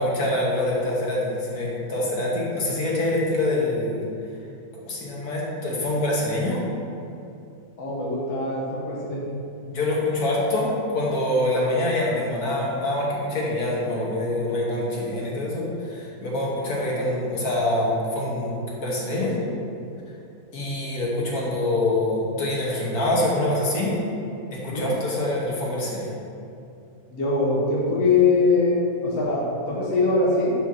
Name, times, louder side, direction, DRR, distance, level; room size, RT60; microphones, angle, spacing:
voice 1, 0.0-4.0 4.9-6.6 9.7-19.3 20.5-24.0 24.6-26.1, left 1 dB, 75° left, -4 dB, 1.8 m, -25 dB
voice 2, 7.8-9.3 19.1-19.6 24.7-24.9 27.1-30.5, left 3 dB, 60° left, -5 dB, 1.4 m, -23 dB
5.5 x 4.3 x 6.2 m, 2.6 s
omnidirectional pair, 1.6 m